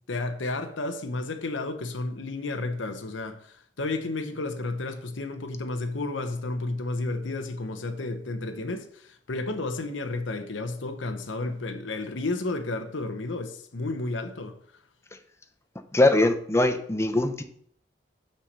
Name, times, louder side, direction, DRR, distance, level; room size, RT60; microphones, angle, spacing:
voice 1, 0.1-14.6, left 2 dB, 85° left, 0.9 m, -32 dB
voice 2, 15.9-17.4, left 2 dB, 15° left, 0.8 m, -21 dB
5.8 x 5.8 x 6.7 m
head